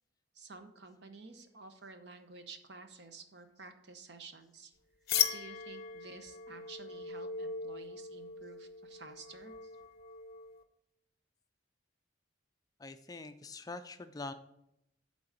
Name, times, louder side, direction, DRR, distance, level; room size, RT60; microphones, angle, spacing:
voice 1, 0.3-4.7 5.3-9.7, right 4 dB, 60° right, 7 dB, 0.9 m, -52 dB
sound 1, 5.1-10.6, left 8 dB, 50° left, 0.7 m, -38 dB
voice 2, 12.8-14.3, left 3 dB, 20° left, 9 dB, 0.4 m, -44 dB
8.5 x 3.9 x 6.6 m, 0.80 s
head